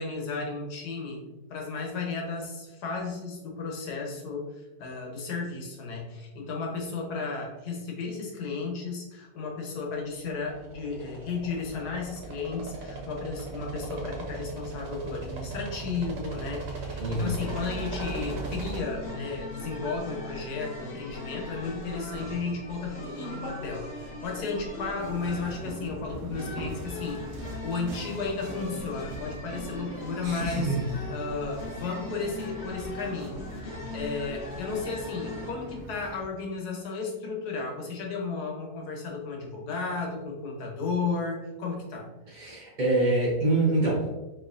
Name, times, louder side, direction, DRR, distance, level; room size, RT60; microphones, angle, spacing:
voice 1, 0.0-30.7 31.1-42.1, left 4 dB, 75° left, 0 dB, 1.4 m, -34 dB
sound 1, 10.1-18.8, right 3 dB, 85° right, 1.3 m, -38 dB
voice 2, 17.0-17.4 30.2-30.8 42.3-44.2, right 2 dB, 45° right, -6 dB, 0.6 m, -26 dB
sound 2, 17.4-35.5, left 2 dB, 45° left, 1.4 m, -40 dB
sound 3, 25.0-36.3, right 2 dB, 70° right, 1.0 m, -42 dB
4.2 x 3.2 x 2.5 m, 1.1 s
omnidirectional pair, 1.7 m